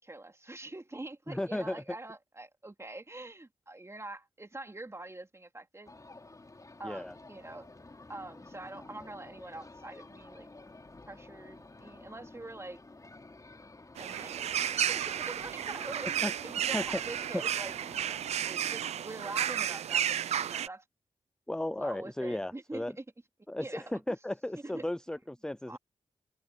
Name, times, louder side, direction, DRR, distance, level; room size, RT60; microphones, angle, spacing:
voice 1, 0.0-5.9 6.8-7.7 8.1-10.5 11.1-12.8 14.0-20.8 21.7-23.0 23.6-23.8 24.6-24.8 25.1-25.2 25.7-25.8, right 2 dB, 25° right, 3.3 m, -45 dB
voice 2, 1.3-1.8 6.8-7.2 16.2-16.3 16.7-16.8 21.5-23.0 23.5-25.8, left 1 dB, 5° left, 0.5 m, -35 dB
sound 1, 5.8-18.3, left 2 dB, 30° left, 3.7 m, -52 dB
sound 2, 14.0-20.7, right 9 dB, 85° right, 0.7 m, -32 dB
supercardioid pair, 40°, 11 cm